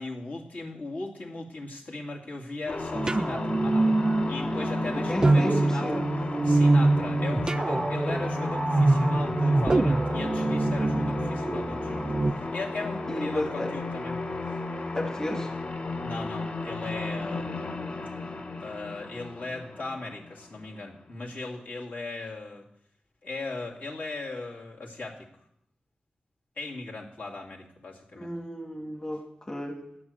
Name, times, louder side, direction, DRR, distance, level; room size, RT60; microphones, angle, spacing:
voice 1, 0.0-4.0 4.2-6.1 6.4-14.2 16.0-17.7 18.6-22.6 23.2-25.3 26.6-28.3, left 3 dB, 65° left, -2 dB, 2.6 m, -38 dB
sound 1, 2.7-21.0, left 3 dB, 45° left, 1.0 m, -34 dB
sound 2, 2.9-12.3, right 2 dB, 25° right, 0.3 m, -25 dB
voice 2, 4.9-6.0 13.1-13.7 14.9-15.5 28.1-29.8, left 1 dB, 20° left, 0 dB, 1.6 m, -32 dB
11.0 x 6.3 x 7.7 m, 0.74 s
wide cardioid pair, 90°, 3 cm